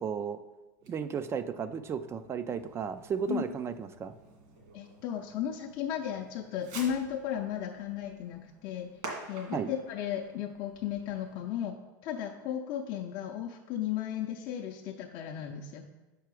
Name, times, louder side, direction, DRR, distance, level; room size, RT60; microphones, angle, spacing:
voice 1, 0.0-0.4 0.9-4.1 9.5-9.7, right 7 dB, 25° right, 11 dB, 0.3 m, -34 dB
Fireworks, 0.8-11.5, right 3 dB, 65° right, 2.0 m, -50 dB
voice 2, 4.7-8.9 9.3-11.8 12.0-15.9, left 9 dB, 50° left, 1 dB, 0.5 m, -35 dB
5.9 x 4.6 x 4.8 m, 1.1 s
supercardioid pair, 120°, 11 cm